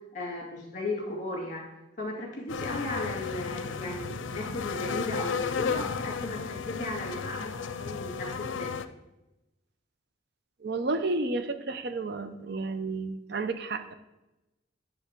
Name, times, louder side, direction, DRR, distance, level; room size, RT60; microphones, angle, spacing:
voice 1, 0.1-1.7 2.0-8.8, left 2 dB, 45° left, -1 dB, 2.3 m, -36 dB
sound 1, 2.5-8.9, left 5 dB, 90° left, 0.5 m, -34 dB
voice 2, 10.6-13.9, right 3 dB, 60° right, 9 dB, 0.6 m, -31 dB
9.9 x 3.5 x 6.6 m, 0.98 s
head